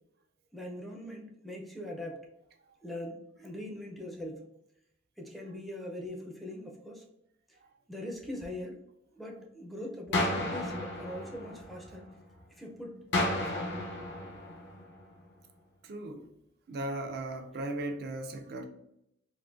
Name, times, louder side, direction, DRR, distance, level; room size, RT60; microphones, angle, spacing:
voice 1, 0.5-2.2 2.8-4.5 5.2-7.0 7.9-8.8 9.2-12.1 12.6-13.7, left 1 dB, ahead, -1 dB, 0.5 m, -42 dB
sound 1, 10.1-12.2 13.1-15.2, left 1 dB, 60° left, 0.7 m, -33 dB
voice 2, 15.8-16.2 16.7-18.6, right 1 dB, 55° right, 4 dB, 0.4 m, -37 dB
3.7 x 2.6 x 2.5 m, 0.79 s
head